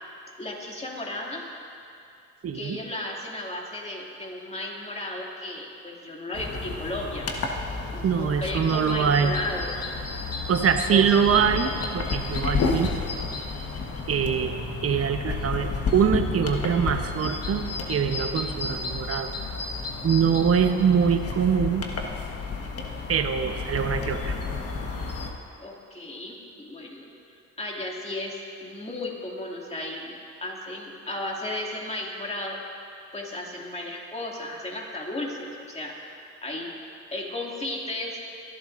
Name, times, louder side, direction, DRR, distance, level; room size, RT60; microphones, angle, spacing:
voice 1, 0.4-1.4 2.5-7.3 7.9-9.7 10.7-11.0 24.2-24.4 25.6-27.1 27.6-32.6 33.1-35.9 36.4-36.7 37.1-38.2, left 1 dB, 20° left, -2 dB, 2.5 m, -34 dB
voice 2, 2.4-2.8 8.0-9.3 10.5-12.9 14.1-14.6 14.8-19.3 20.0-21.9 23.1-24.4, right 7 dB, 50° right, 6 dB, 1.0 m, -23 dB
sound 1, 6.3-25.3, left 4 dB, 50° left, 1.5 m, -31 dB
25.5 x 11.5 x 2.6 m, 2.5 s
cardioid pair, 90°, 30 cm